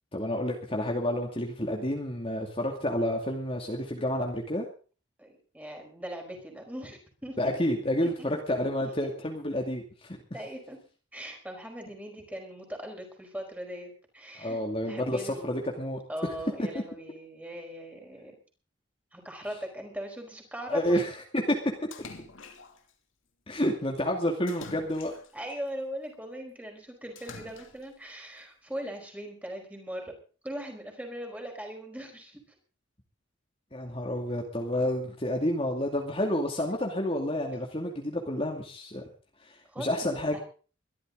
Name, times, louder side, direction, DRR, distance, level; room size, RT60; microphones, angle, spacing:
voice 1, 0.1-4.7 7.4-10.2 14.4-16.0 20.7-21.1 21.5-21.6 23.5-25.1 33.7-39.0 39.5-40.4, left 1 dB, 30° left, 1 dB, 2.4 m, -29 dB
voice 2, 5.2-7.5 8.0-8.4 8.9-9.1 10.3-10.8 11.1-14.6 14.9-15.6 16.1-18.3 19.1-21.0 25.3-30.1 30.4-32.4 39.7-40.4, equal, 10° right, 2 dB, 4.8 m, -40 dB
Splash splatter, 21.9-22.9 24.5-25.5 27.2-28.0, left 4 dB, 85° left, 2.6 m, -46 dB
23.0 x 13.0 x 3.9 m, 0.39 s
head